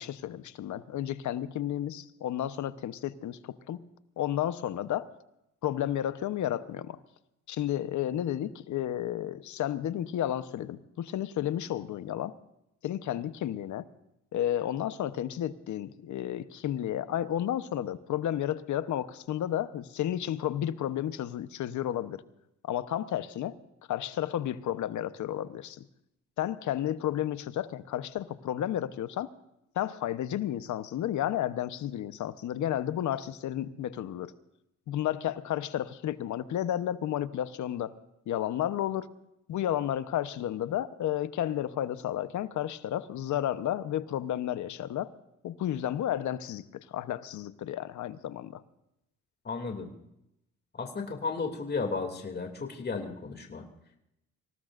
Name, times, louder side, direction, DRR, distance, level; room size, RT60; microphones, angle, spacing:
voice 1, 0.0-3.9 4.2-5.1 5.6-7.0 7.5-12.3 12.8-13.8 14.3-22.2 22.6-23.6 23.9-25.8 26.4-29.3 29.8-34.3 34.9-37.9 38.3-39.1 39.5-45.1 45.4-48.6, left 11 dB, 70° left, 13 dB, 1.0 m, -32 dB
voice 2, 49.4-49.9 50.7-53.7, left 4 dB, 35° left, 2 dB, 2.6 m, -34 dB
26.0 x 17.5 x 2.6 m, 0.83 s
cardioid pair, 90°, 30 cm